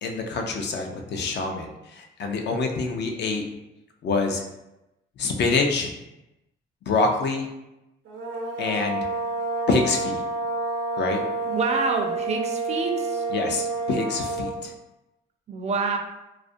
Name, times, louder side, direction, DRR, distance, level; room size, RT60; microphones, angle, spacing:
voice 1, 0.0-3.4 4.0-4.4 5.2-5.9 6.8-7.5 8.6-9.1 9.7-10.2 11.0-11.2 13.3-14.7, left 3 dB, 60° left, 3 dB, 0.5 m, -26 dB
sound 1, 8.1-14.7, right 3 dB, 90° right, 0.7 m, -29 dB
voice 2, 11.5-13.2 15.5-16.0, right 4 dB, 35° right, 3 dB, 0.4 m, -27 dB
2.3 x 2.1 x 2.5 m, 0.93 s
cardioid pair, 90°, 20 cm